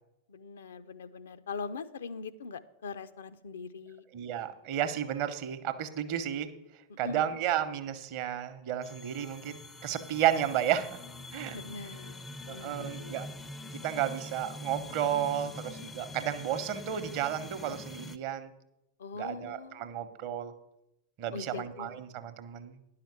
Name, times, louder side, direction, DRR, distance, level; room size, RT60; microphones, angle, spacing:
voice 1, 0.3-4.0 6.9-7.4 11.5-13.2 19.0-20.0 21.3-22.0, left 4 dB, 65° left, 12 dB, 0.5 m, -42 dB
voice 2, 4.1-6.5 7.0-11.0 11.3-11.6 12.5-13.3 13.8-18.5 19.2-20.5 21.2-22.7, right 10 dB, 45° right, 10 dB, 0.9 m, -32 dB
sound 1, 8.8-18.2, left 2 dB, 10° left, 0.5 m, -44 dB
10.5 x 5.8 x 6.7 m, 0.88 s
figure-of-eight pair, 90°, 0 cm